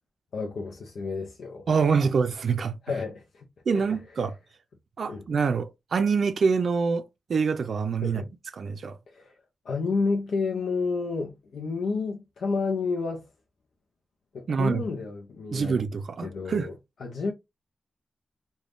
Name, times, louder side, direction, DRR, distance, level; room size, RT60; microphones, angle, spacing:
voice 1, 0.3-2.0 2.8-3.4 3.7-4.0 5.1-5.2 8.0-8.3 9.1-9.3 9.6-13.3 14.3-15.8 16.2-16.7 17.0-17.3, left 4 dB, 90° left, 0.5 m, -30 dB
voice 2, 1.7-2.7 3.7-4.3 5.0-7.0 7.3-8.2 8.5-9.0 14.5-14.8 15.5-16.7, right 5 dB, 70° right, 0.4 m, -25 dB
3.3 x 2.2 x 2.5 m
cardioid pair, 75°, 0 cm